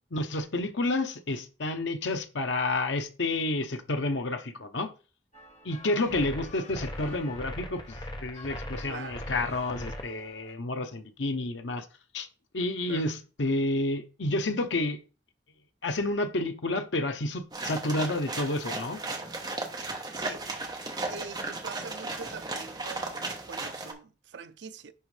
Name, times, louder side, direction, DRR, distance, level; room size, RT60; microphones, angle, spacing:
voice 1, 0.1-4.9 5.6-11.9 12.1-12.3 12.5-15.0 15.8-19.0, left 2 dB, 85° left, 0.8 m, -30 dB
sound 1, 5.3-10.5, left 1 dB, 40° left, 1.9 m, -49 dB
sound 2, 6.1-10.0, left 1 dB, 25° left, 0.7 m, -39 dB
voice 2, 8.9-9.3 12.9-13.1 20.1-20.5 21.1-24.9, right 5 dB, 75° right, 0.5 m, -43 dB
sound 3, 17.5-23.9, right 3 dB, 25° right, 1.1 m, -35 dB
10.5 x 3.6 x 3.3 m
head